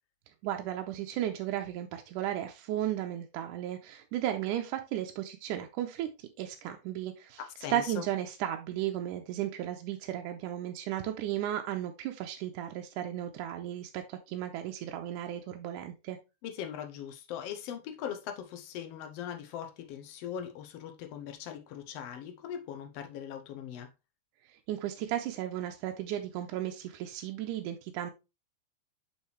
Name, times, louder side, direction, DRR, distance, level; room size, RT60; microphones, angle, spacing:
voice 1, 0.4-7.4 7.7-16.2 24.5-28.1, right 12 dB, 90° right, 2.1 m, -35 dB
voice 2, 7.6-8.1 16.4-23.9, left 9 dB, 80° left, 1.4 m, -40 dB
6.6 x 5.6 x 3.1 m
omnidirectional pair, 3.6 m